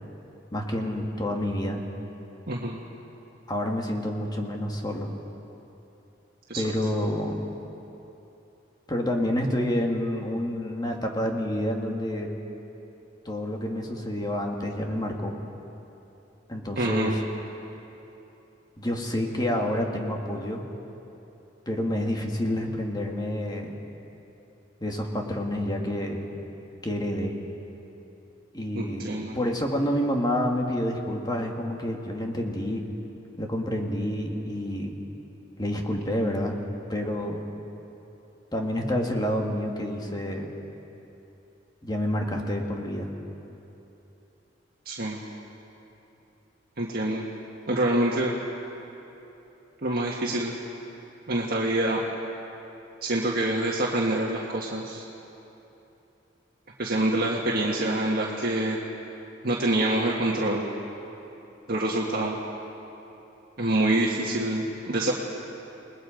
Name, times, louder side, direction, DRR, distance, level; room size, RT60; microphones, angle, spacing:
voice 1, 0.5-1.8 3.5-5.1 6.6-7.4 8.9-12.3 13.3-15.4 16.5-17.2 18.8-20.6 21.7-23.8 24.8-26.3 26.8-27.3 28.5-29.0 29.3-32.8 33.4-34.9 35.6-36.6 36.9-37.4 38.5-40.5 41.8-43.1, left 1 dB, 20° left, 1 dB, 2.0 m, -28 dB
voice 2, 2.5-2.8 6.5-6.6 16.8-17.2 28.7-29.4 44.9-45.2 46.8-47.2 47.7-48.3 49.8-50.6 51.3-52.0 53.0-55.0 56.8-58.8 59.4-60.7 61.7-62.4 63.6-65.1, right 1 dB, 55° right, -3 dB, 1.7 m, -26 dB
29.0 x 19.5 x 5.2 m, 3.0 s
head